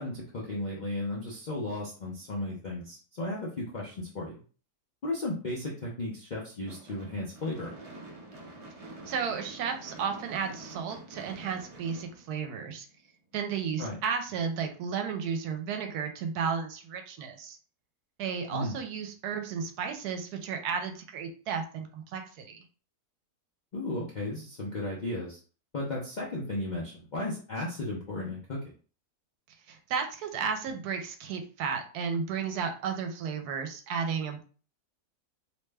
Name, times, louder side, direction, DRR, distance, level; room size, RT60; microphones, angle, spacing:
voice 1, 0.0-4.4 5.0-7.7 13.8-14.0 18.5-18.7 23.7-25.4 25.7-28.6, left 2 dB, 60° left, -5 dB, 0.4 m, -35 dB
Gunshot gunfire / Fireworks, 6.7-12.9, right 2 dB, 60° right, 0.3 m, -47 dB
voice 2, 9.1-12.9 13.3-17.6 18.2-22.6 29.7-34.4, right 6 dB, 80° right, 5 dB, 1.1 m, -33 dB
2.9 x 2.1 x 3.3 m, 0.39 s
omnidirectional pair, 1.7 m